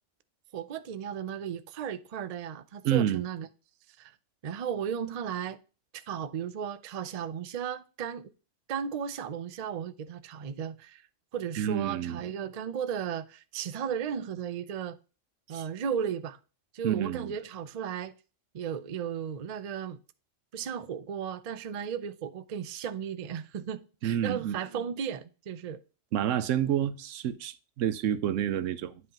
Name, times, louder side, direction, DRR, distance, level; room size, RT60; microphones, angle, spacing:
voice 1, 0.5-3.5 4.0-4.1 4.4-5.6 5.9-8.3 8.7-11.0 11.3-15.0 15.5-16.4 16.7-18.1 18.5-20.0 20.5-25.8, right 8 dB, 50° right, 0.5 m, -35 dB
voice 2, 2.8-3.2 11.6-12.2 15.5-15.7 16.8-17.3 24.0-24.6 26.1-29.0, right 10 dB, 85° right, 1.0 m, -29 dB
9.7 x 5.4 x 2.9 m
omnidirectional pair, 1.3 m